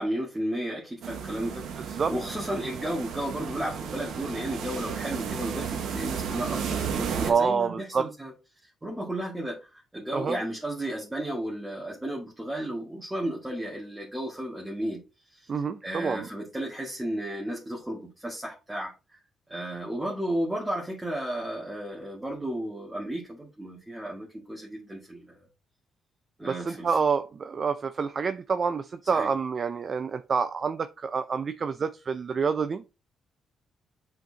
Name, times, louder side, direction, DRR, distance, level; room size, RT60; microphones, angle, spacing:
voice 1, 0.0-8.3 8.6-15.0 15.3-15.5 15.8-18.9 19.5-25.4 26.4-26.9 29.1-29.3, right 1 dB, 10° right, -3 dB, 1.9 m, -33 dB
sound 1, 1.0-7.3, right 7 dB, 80° right, 1.1 m, -33 dB
voice 2, 1.8-2.1 7.1-8.0 10.1-10.4 15.5-16.3 26.5-32.8, right 5 dB, 40° right, 10 dB, 0.4 m, -27 dB
8.0 x 4.4 x 2.8 m, 0.30 s
cardioid pair, 90°, 0 cm